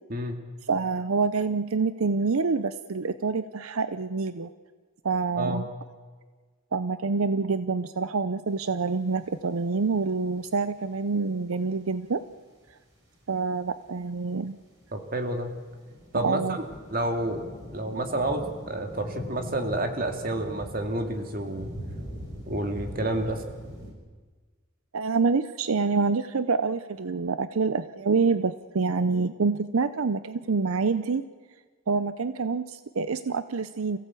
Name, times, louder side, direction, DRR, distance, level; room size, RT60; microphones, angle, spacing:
voice 1, 0.7-4.5 5.0-5.7 6.7-12.2 13.3-14.6 16.2-16.6 24.9-31.2 31.9-34.0, right 4 dB, 85° right, 13 dB, 0.6 m, -26 dB
sound 1, 8.5-10.8 11.1-11.3 11.7-12.1 12.3-23.9, equal, 60° right, 6.0 m, -42 dB
voice 2, 14.9-15.5 16.1-16.7 16.9-17.5 17.7-21.7 22.5-23.4, right 1 dB, 45° right, 5 dB, 2.4 m, -29 dB
27.0 x 16.0 x 8.4 m, 1.4 s
head